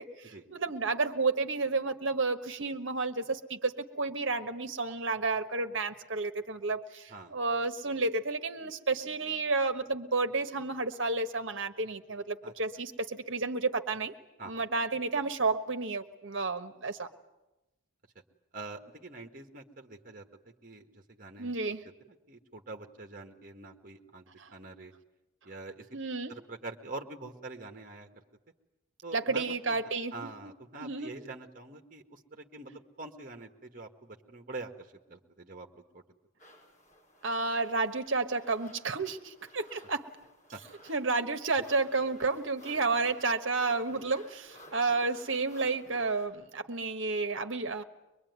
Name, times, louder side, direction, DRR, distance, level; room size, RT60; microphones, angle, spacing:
voice 1, 0.0-14.1 14.4-17.1 21.4-21.8 24.4-24.5 25.9-26.3 29.1-30.5 30.8-31.1 37.2-40.1 40.9-47.8, right 3 dB, 65° right, 8 dB, 1.3 m, -31 dB
voice 2, 18.5-20.2 20.6-21.8 22.1-24.9 25.4-26.0 26.3-28.2 29.0-29.8 30.1-36.0 40.5-40.6 43.9-44.0, right 3 dB, 40° right, 4 dB, 1.6 m, -45 dB
sound 1, 36.4-46.3, equal, 35° left, 5.0 m, -55 dB
24.0 x 21.5 x 9.5 m, 1.0 s
head